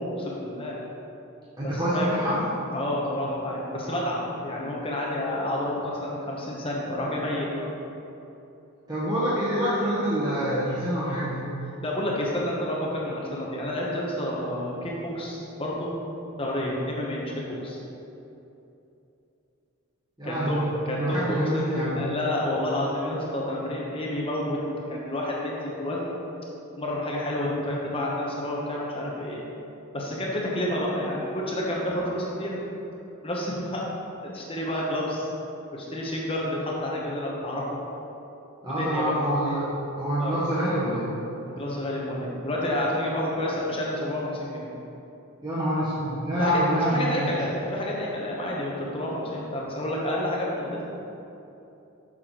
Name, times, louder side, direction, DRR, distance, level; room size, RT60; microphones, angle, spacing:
voice 1, 0.2-0.8 1.6-2.1 2.7-7.6 11.8-15.9 16.4-17.8 20.2-20.6 20.8-24.6 24.9-26.1 26.8-29.4 29.9-32.6 33.2-33.9 34.3-35.3 35.7-37.8 38.6-39.1 40.2-40.3 41.5-44.7 46.4-46.5 46.8-50.8, left 1 dB, 25° left, -3 dB, 1.0 m, -29 dB
voice 2, 1.6-2.5 8.9-11.4 20.2-20.7 21.0-22.0 38.6-39.7 40.0-41.1 45.4-47.3, equal, 20° right, -10 dB, 1.1 m, -26 dB
6.5 x 6.1 x 3.8 m, 2.9 s
head